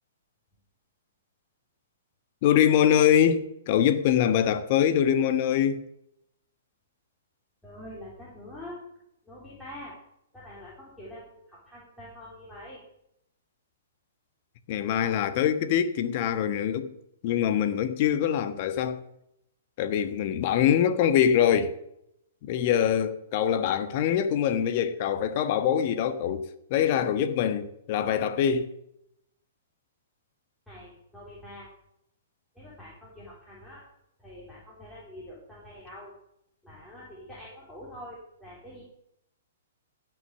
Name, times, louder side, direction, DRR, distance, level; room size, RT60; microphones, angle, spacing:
voice 1, 2.4-5.9 14.7-16.9 17.2-19.0 19.8-21.8 22.4-28.7, left 9 dB, 45° left, 1.3 m, -24 dB
voice 2, 7.6-8.8 9.3-9.9 10.3-11.4 11.7-12.8 30.7-31.7 32.6-33.8 34.2-36.1 36.6-38.8, left 1 dB, 5° left, 4.1 m, -45 dB
16.5 x 6.2 x 6.8 m
hypercardioid pair, 125°, 0 cm